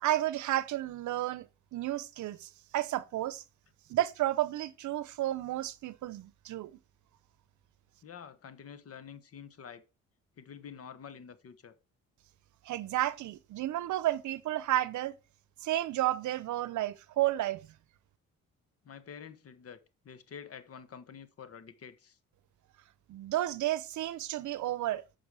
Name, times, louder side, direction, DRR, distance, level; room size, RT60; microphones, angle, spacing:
voice 1, 0.0-3.4 3.9-6.7 12.6-15.1 15.6-17.7 23.1-25.0, right 14 dB, 75° right, 0.7 m, -32 dB
voice 2, 8.0-9.8 10.4-11.7 18.8-19.8 20.0-22.2, left 7 dB, 50° left, 1.1 m, -48 dB
8.7 x 5.7 x 4.8 m
cardioid pair, 90°, 30 cm